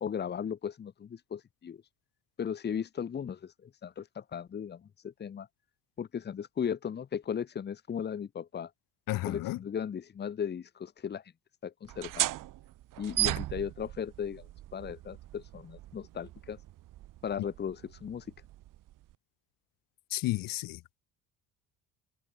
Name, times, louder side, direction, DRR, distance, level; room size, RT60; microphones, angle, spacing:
voice 1, 0.0-1.8 2.4-5.5 6.0-8.7 9.3-11.2 11.6-12.3 13.0-14.5 14.7-16.6 17.2-18.3, left 8 dB, 30° left, 1.8 m, -36 dB
voice 2, 9.1-9.6 20.1-20.8, left 17 dB, 65° left, 2.5 m, -32 dB
sound 1, 11.8-19.1, right 15 dB, 60° right, 5.5 m, -37 dB
cardioid pair, 150°, 36 cm